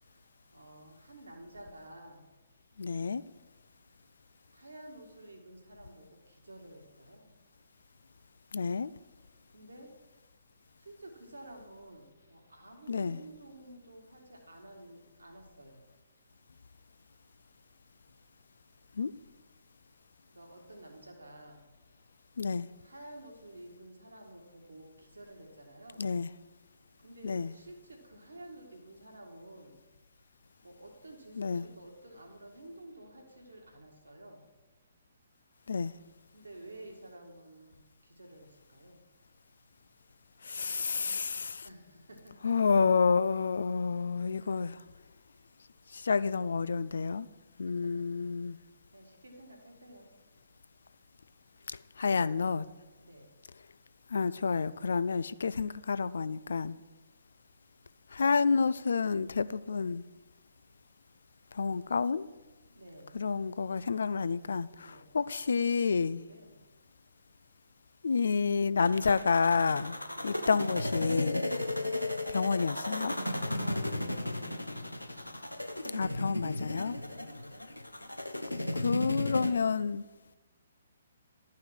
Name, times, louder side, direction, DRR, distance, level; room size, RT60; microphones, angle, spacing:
voice 1, 0.0-2.3 3.8-3.9 4.5-7.3 9.5-9.9 10.8-15.8 20.3-21.7 22.8-26.1 27.0-29.8 30.6-34.4 36.3-39.0 41.6-42.7 43.9-44.0 44.4-44.6 47.6-48.6 48.9-50.1 51.8-52.0 53.0-53.3 62.7-63.2 64.8-65.2 66.2-66.6 69.8-70.4 73.1-75.0 76.9-77.5, right 1 dB, 75° right, 2.1 m, -51 dB
voice 2, 2.8-3.2 8.5-8.9 12.9-13.2 19.0-19.1 22.4-22.7 26.0-26.3 27.2-27.5 31.4-31.7 35.7-35.9 40.4-41.7 42.4-44.8 45.9-47.3 47.6-48.6 51.7-52.7 54.1-56.8 58.1-60.0 61.5-62.3 63.1-66.2 68.0-70.0 70.2-71.5 72.3-73.2 75.9-77.0 78.7-80.0, left 5 dB, 60° left, 0.3 m, -29 dB
sound 1, 68.8-79.5, left 1 dB, 85° left, 0.8 m, -35 dB
12.0 x 5.6 x 6.3 m
figure-of-eight pair, 130°, 0 cm